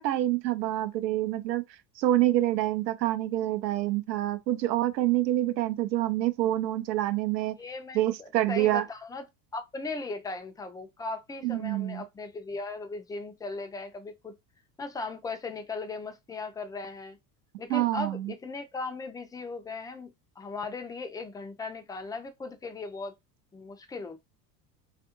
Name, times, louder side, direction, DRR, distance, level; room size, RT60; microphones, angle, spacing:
voice 1, 0.0-1.6 2.0-7.5 7.9-8.8 11.4-12.0 17.7-18.3, right 14 dB, 85° right, 0.6 m, -27 dB
voice 2, 7.6-9.2 9.5-14.4 14.8-17.2 17.6-23.1 23.5-24.2, left 3 dB, 10° left, 0.4 m, -38 dB
3.3 x 2.5 x 2.8 m
hypercardioid pair, 80°, 50 cm